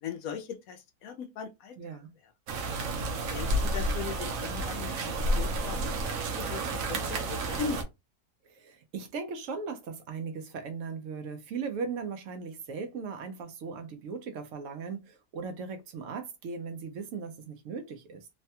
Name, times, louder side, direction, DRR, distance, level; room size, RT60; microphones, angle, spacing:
voice 1, 0.0-1.8 3.3-7.8, left 6 dB, 70° left, 0.8 m, -39 dB
voice 2, 1.8-2.1 8.4-18.3, right 5 dB, 90° right, 0.6 m, -38 dB
sound 1, 2.5-7.8, right 1 dB, 65° right, 0.9 m, -31 dB
3.1 x 2.2 x 2.7 m
omnidirectional pair, 1.9 m